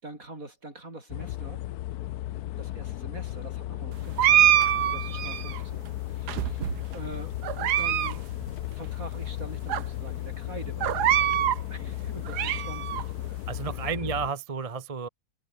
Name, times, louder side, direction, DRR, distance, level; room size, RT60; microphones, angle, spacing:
voice 1, 0.0-1.6 2.6-8.3 8.7-13.4 13.7-13.9, right 2 dB, 55° right, 6.8 m, -44 dB
sound 1, 1.1-14.3, left 14 dB, 75° left, 1.1 m, -35 dB
sound 2, 4.2-5.6 6.3-7.0 7.4-8.1 8.4-8.5 9.2-9.3 9.7-9.8 10.8-11.6 12.1-13.0, right 11 dB, 80° right, 1.5 m, -24 dB
voice 2, 13.5-15.1, right 6 dB, 30° right, 0.8 m, -32 dB
omnidirectional pair, 1.7 m